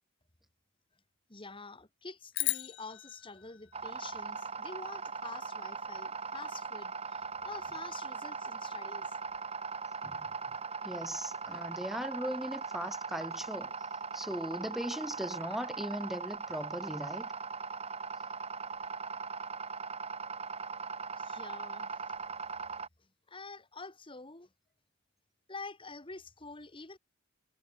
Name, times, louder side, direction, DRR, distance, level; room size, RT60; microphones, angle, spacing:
voice 1, 1.3-9.2 21.2-22.0 23.3-24.5 25.5-27.0, left 3 dB, 25° left, 2.0 m, -47 dB
sound 1, 2.3-4.8, left 19 dB, 60° left, 1.2 m, -37 dB
sound 2, 3.7-22.9, right 5 dB, 30° right, 3.5 m, -40 dB
voice 2, 10.8-13.7 14.1-17.3, equal, ahead, 1.8 m, -38 dB
head